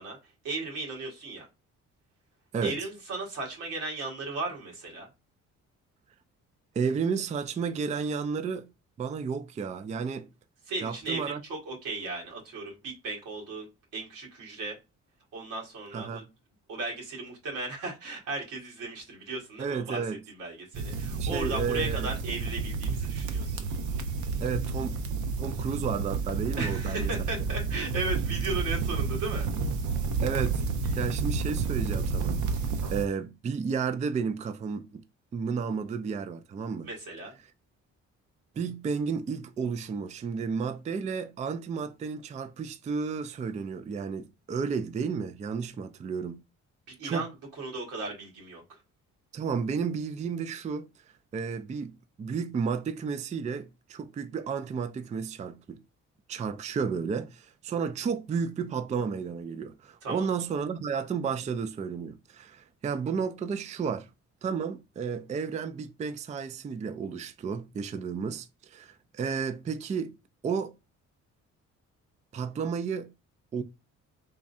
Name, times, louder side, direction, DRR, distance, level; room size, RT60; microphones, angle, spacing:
voice 1, 0.0-1.5 2.6-5.1 10.7-13.7 13.9-14.8 15.3-16.2 16.7-20.0 20.3-23.7 26.6-29.5 36.9-37.3 46.9-47.3 47.6-48.8 60.0-60.3, right 3 dB, 90° right, 1.7 m, -36 dB
voice 2, 2.5-2.9 6.8-8.7 9.0-10.3 10.8-11.4 15.9-16.2 19.6-20.2 21.2-22.1 24.4-25.0 25.4-27.1 30.2-30.6 31.0-32.4 32.9-35.0 35.3-36.9 38.6-46.4 47.0-47.3 49.3-50.9 51.3-55.8 56.3-64.1 64.4-70.2 70.4-70.7 72.3-73.1 73.5-73.6, right 6 dB, 25° right, 0.3 m, -32 dB
sound 1, 20.7-33.0, right 4 dB, 70° right, 0.6 m, -30 dB
3.6 x 3.1 x 2.6 m
cardioid pair, 90°, 30 cm